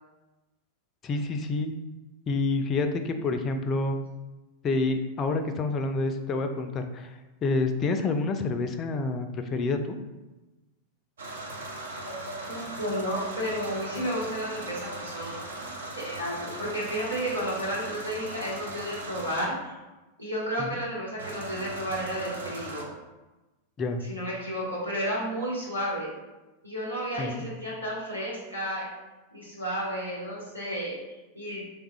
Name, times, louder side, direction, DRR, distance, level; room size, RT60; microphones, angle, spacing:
voice 1, 1.0-1.7 2.3-4.0 4.6-7.1 7.4-10.0 20.6-20.8 23.8-24.0 27.2-27.4, left 3 dB, 30° left, 7 dB, 0.3 m, -28 dB
sound 1, 11.2-19.4 21.2-22.8, right 2 dB, 65° right, 0.6 m, -38 dB
voice 2, 12.1-15.3 15.9-19.7 20.2-22.9 24.0-26.1 26.6-28.9 29.3-31.7, equal, 85° right, -6 dB, 1.1 m, -32 dB
3.6 x 3.3 x 2.3 m, 1.1 s
figure-of-eight pair, 90°, 0 cm